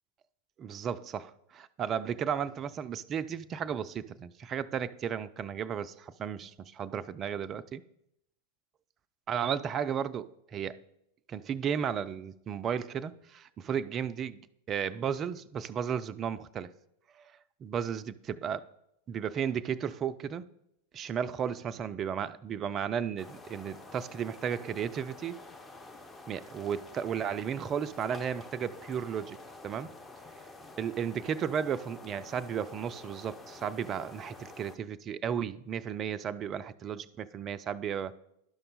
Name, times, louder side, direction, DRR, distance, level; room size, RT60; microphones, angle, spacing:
voice 1, 0.6-7.8 9.3-10.8 11.3-14.4 14.7-16.7 17.2-17.3 17.6-18.6 19.1-20.4 20.9-25.4 26.3-29.4 29.6-29.9 30.8-38.2, right 8 dB, 30° right, 0.3 m, -34 dB
sound 1, 23.2-34.8, left 2 dB, 10° left, 0.7 m, -49 dB
12.0 x 5.4 x 4.0 m
figure-of-eight pair, 90°, 0 cm